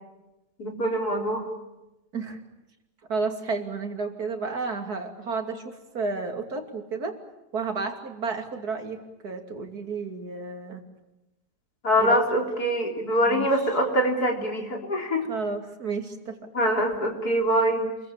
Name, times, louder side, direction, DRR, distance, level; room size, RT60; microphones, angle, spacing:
voice 1, 0.6-1.5 11.8-15.2 16.5-17.8, equal, 65° left, 1 dB, 4.3 m, -24 dB
voice 2, 3.1-7.2 7.5-10.8 12.0-12.2 13.2-13.5 15.3-16.4 17.8-17.9, right 4 dB, 65° right, 4 dB, 3.2 m, -32 dB
28.5 x 22.5 x 7.4 m, 0.98 s
omnidirectional pair, 1.7 m